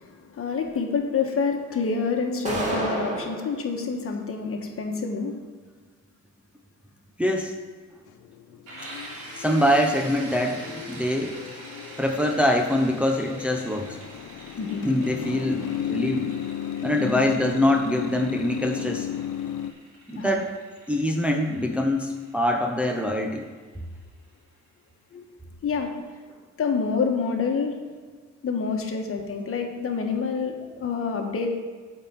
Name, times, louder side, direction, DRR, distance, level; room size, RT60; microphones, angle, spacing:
voice 1, 0.0-5.3 14.6-14.9 17.0-17.3 20.1-20.4 25.1-25.2 25.6-25.9 26.6-27.7 28.4-31.5, left 5 dB, 50° left, 3 dB, 1.3 m, -27 dB
sound 1, 2.4-3.5, right 1 dB, 25° right, 2.0 m, -28 dB
voice 2, 7.2-7.6 8.7-11.4 12.0-14.0 14.8-16.3 16.8-19.1 20.1-20.5 20.9-23.4, left 1 dB, 5° right, 2 dB, 0.7 m, -24 dB
sound 2, 8.1-19.7, left 10 dB, 80° left, 0.5 m, -34 dB
sound 3, 8.7-24.2, right 2 dB, 90° right, 2.2 m, -45 dB
8.6 x 4.3 x 5.9 m, 1.5 s
cardioid pair, 90°, 30 cm